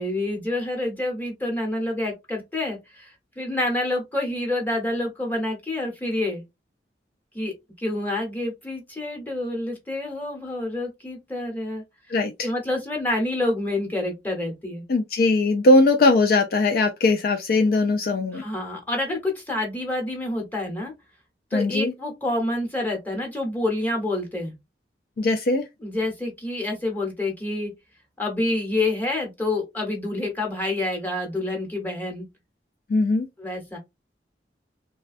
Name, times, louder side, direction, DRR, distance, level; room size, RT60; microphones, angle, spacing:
voice 1, 0.0-6.4 7.3-11.8 12.4-14.8 18.3-20.9 21.5-24.5 25.8-27.7 28.2-32.3 33.4-33.8, left 2 dB, 10° left, 1.0 m, -28 dB
voice 2, 12.1-12.5 14.9-18.4 21.5-21.9 25.2-25.6 32.9-33.3, left 2 dB, 55° left, 0.3 m, -20 dB
3.2 x 2.2 x 2.5 m
head